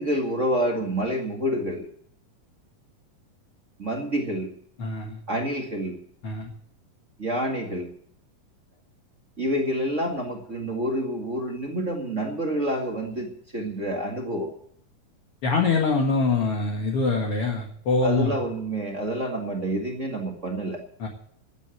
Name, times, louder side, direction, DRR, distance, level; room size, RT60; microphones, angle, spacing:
voice 1, 0.0-1.9 3.8-4.5 5.3-5.9 7.2-7.9 9.4-14.5 18.0-20.8, right 1 dB, 30° right, 1 dB, 1.7 m, -28 dB
voice 2, 4.8-5.2 6.2-6.5 15.4-18.3 21.0-21.1, left 3 dB, 45° left, 1 dB, 2.2 m, -24 dB
16.5 x 8.4 x 7.9 m, 0.65 s
omnidirectional pair, 4.0 m